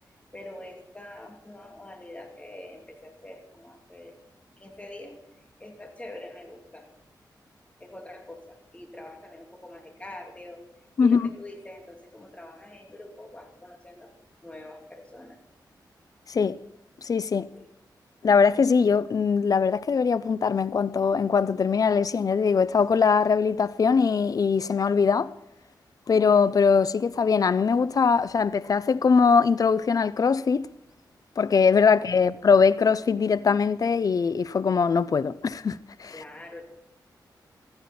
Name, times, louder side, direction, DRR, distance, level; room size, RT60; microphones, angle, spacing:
voice 1, 0.3-4.2 4.6-6.9 7.8-10.7 11.0-14.1 14.4-15.4 17.5-17.7 36.1-36.6, left 1 dB, 15° left, 2.9 m, -44 dB
voice 2, 11.0-11.3 16.3-16.6 17.0-17.5 18.2-25.3 26.1-30.7 31.4-36.1, left 5 dB, 50° left, 0.5 m, -21 dB
16.5 x 14.0 x 4.3 m
wide cardioid pair, 90°, 8 cm